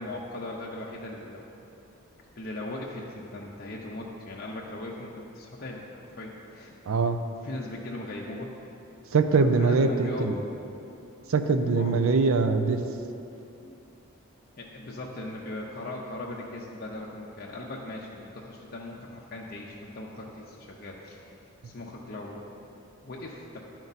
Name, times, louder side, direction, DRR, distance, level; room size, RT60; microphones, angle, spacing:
voice 1, 0.0-1.5 2.4-6.8 7.4-8.5 9.4-10.3 11.6-12.0 14.6-21.3 21.6-22.4 23.0-23.6, left 2 dB, 45° left, -3 dB, 0.6 m, -39 dB
voice 2, 6.9-7.2 9.1-10.3 11.3-12.8, right 4 dB, 75° right, 8 dB, 0.4 m, -23 dB
11.0 x 4.5 x 4.0 m, 2.8 s
head